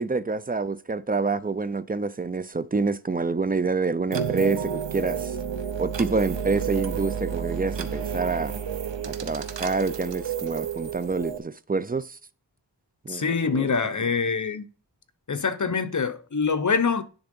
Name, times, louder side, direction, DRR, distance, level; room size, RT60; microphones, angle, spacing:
voice 1, 0.0-5.3 5.8-8.5 9.0-12.2 13.1-13.7, right 4 dB, 20° right, 0.4 m, -27 dB
sound 1, 4.1-11.4, right 7 dB, 80° right, 0.8 m, -31 dB
voice 2, 13.1-14.7 15.3-17.0, left 5 dB, 45° left, 0.8 m, -25 dB
10.0 x 3.6 x 5.3 m
wide cardioid pair, 65°, 44 cm